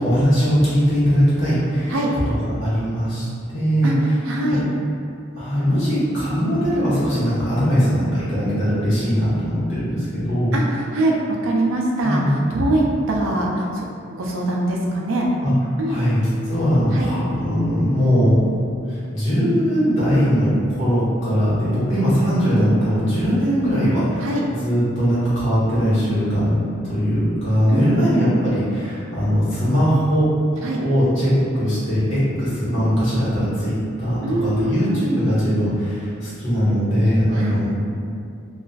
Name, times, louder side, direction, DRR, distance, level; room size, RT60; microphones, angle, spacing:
voice 1, 0.0-1.9 2.3-3.2 3.5-3.9 4.5-4.6 5.4-10.6 12.0-12.4 15.4-15.5 15.9-16.2 16.5-18.4 18.9-24.3 24.6-30.3 30.8-37.7, equal, 65° left, -11 dB, 1.0 m, -20 dB
voice 2, 4.2-4.6 10.5-11.1 11.4-13.8 14.1-15.3 15.8-16.0 16.9-17.1 24.2-24.4 27.7-28.0 30.6-30.8 34.2-35.2 37.3-37.7, right 1 dB, 75° right, -2 dB, 0.4 m, -23 dB
2.4 x 2.3 x 2.2 m, 2.4 s
head